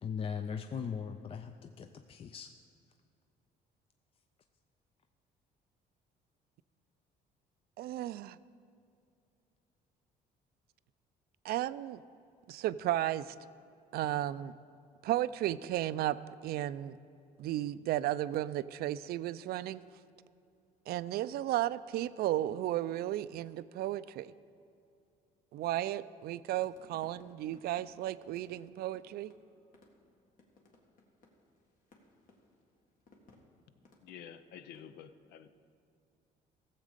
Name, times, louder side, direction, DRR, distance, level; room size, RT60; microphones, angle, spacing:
voice 1, 0.0-2.5, left 6 dB, 35° left, 7 dB, 0.4 m, -39 dB
voice 2, 7.8-8.4 11.4-12.0 12.5-13.4 13.9-14.5 15.0-16.2 16.4-17.0 17.4-19.8 20.9-24.3 25.5-29.3, right 13 dB, 65° right, 16 dB, 0.4 m, -34 dB
sound 1, 26.5-34.9, left 3 dB, 55° left, 1.8 m, -63 dB
voice 3, 33.7-35.5, left 9 dB, 80° left, 12 dB, 0.6 m, -51 dB
15.5 x 7.3 x 5.1 m, 2.5 s
cardioid pair, 110°, 17 cm